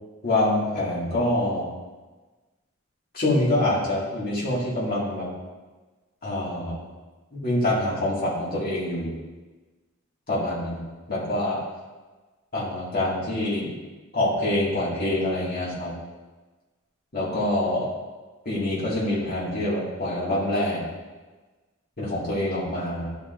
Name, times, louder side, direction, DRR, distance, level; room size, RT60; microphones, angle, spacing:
voice 1, 0.2-1.6 3.1-5.3 6.2-6.8 7.3-9.1 10.3-10.8 11.1-11.6 12.5-13.7 14.1-15.9 17.1-17.9 18.5-20.8 22.0-23.1, left 1 dB, 45° left, -7 dB, 2.1 m, -25 dB
12.0 x 5.0 x 2.6 m, 1.3 s
head